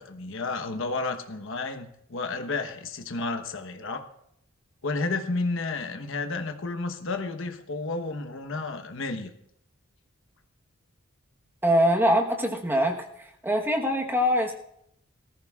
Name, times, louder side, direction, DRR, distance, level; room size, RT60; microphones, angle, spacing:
voice 1, 0.0-4.0 4.8-9.3, left 3 dB, 65° left, 6 dB, 1.1 m, -31 dB
voice 2, 11.6-13.0 13.4-14.5, equal, 10° right, 2 dB, 1.1 m, -23 dB
19.0 x 14.5 x 2.4 m, 0.75 s
head